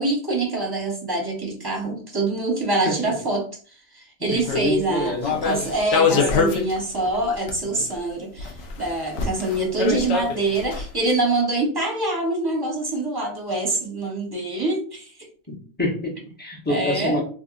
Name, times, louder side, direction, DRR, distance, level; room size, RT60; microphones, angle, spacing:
voice 1, 0.0-3.5 3.9-15.1 16.7-17.2, right 2 dB, 20° right, -1 dB, 0.8 m, -25 dB
voice 2, 4.2-5.3 15.5-17.2, left 1 dB, 10° left, -3 dB, 0.9 m, -27 dB
sound 1, 4.3-4.8 5.2-6.8 7.0-7.9 8.4-10.9, left 5 dB, 60° left, 0.8 m, -24 dB
3.6 x 2.5 x 2.4 m, 0.42 s
omnidirectional pair, 1.3 m